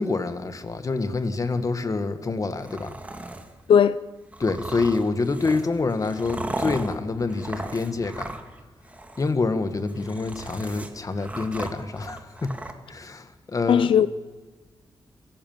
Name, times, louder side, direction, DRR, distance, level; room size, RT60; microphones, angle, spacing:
voice 1, 0.0-3.0 4.4-8.3 9.2-12.5 12.9-13.9, left 3 dB, 40° left, 1.8 m, -27 dB
sound 1, 2.6-3.5 4.3-8.6 8.8-9.3 9.8-12.7, right 1 dB, 15° right, 2.2 m, -36 dB
voice 2, 13.7-14.1, left 8 dB, 85° left, 0.6 m, -17 dB
27.0 x 15.0 x 7.4 m
wide cardioid pair, 105°, 9 cm